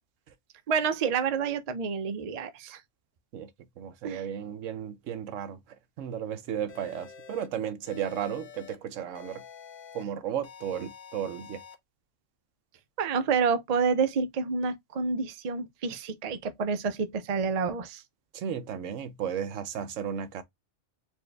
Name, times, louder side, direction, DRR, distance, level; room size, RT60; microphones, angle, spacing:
voice 1, 0.7-2.8 4.0-4.2 13.0-18.0, right 5 dB, 45° right, 0.5 m, -28 dB
voice 2, 3.8-5.6 6.0-9.4 9.9-11.6 18.3-20.4, right 9 dB, 90° right, 1.0 m, -34 dB
sound 1, 6.7-7.5 7.9-8.8 9.2-10.0 10.4-11.8, left 7 dB, 40° left, 0.8 m, -48 dB
4.4 x 2.7 x 3.2 m
omnidirectional pair, 1.3 m